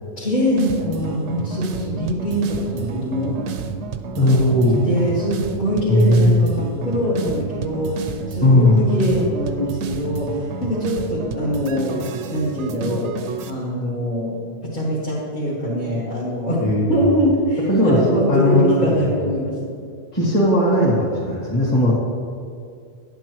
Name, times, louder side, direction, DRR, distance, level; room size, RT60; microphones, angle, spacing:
voice 1, 0.2-3.4 4.2-12.0 12.3-13.0 13.5-14.3 14.6-16.6 16.9-19.5, equal, 45° left, -8 dB, 1.7 m, -23 dB
sound 1, 0.6-13.5, right 5 dB, 80° right, 0.9 m, -30 dB
voice 2, 4.2-4.8 5.9-6.4 8.4-8.8 16.6-17.0 17.7-19.2 20.1-21.9, left 1 dB, 30° left, -9 dB, 2.1 m, -17 dB
10.5 x 8.9 x 3.1 m, 2.2 s
omnidirectional pair, 1.2 m